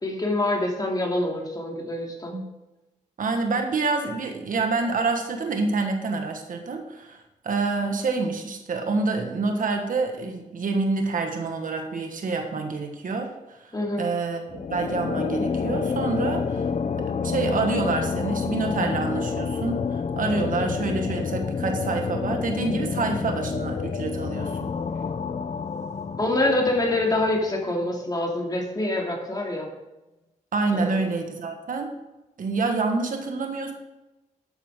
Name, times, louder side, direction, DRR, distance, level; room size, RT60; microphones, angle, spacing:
voice 1, 0.0-2.4 13.7-14.1 26.2-29.7 30.7-31.0, left 2 dB, 30° left, 0 dB, 2.5 m, -25 dB
voice 2, 3.2-7.2 7.4-16.7 17.2-24.7 30.5-32.0 32.4-33.7, right 3 dB, 80° right, 4 dB, 1.4 m, -27 dB
sound 1, 14.5-27.6, left 5 dB, 55° left, 0.6 m, -29 dB
11.5 x 8.4 x 3.7 m, 1.0 s
wide cardioid pair, 80°, 14 cm